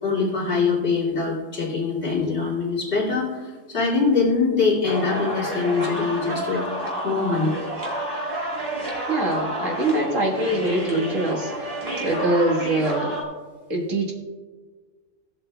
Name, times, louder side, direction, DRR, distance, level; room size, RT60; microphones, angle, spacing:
voice 1, 0.0-6.6 7.0-7.5, left 4 dB, 55° left, -4 dB, 2.8 m, -23 dB
sound 1, 4.8-13.2, right 1 dB, 45° right, 2.0 m, -29 dB
voice 2, 9.1-11.7 12.0-13.2 13.7-14.1, right 1 dB, 75° right, -1 dB, 2.0 m, -24 dB
16.0 x 7.7 x 2.3 m, 1.4 s
omnidirectional pair, 1.3 m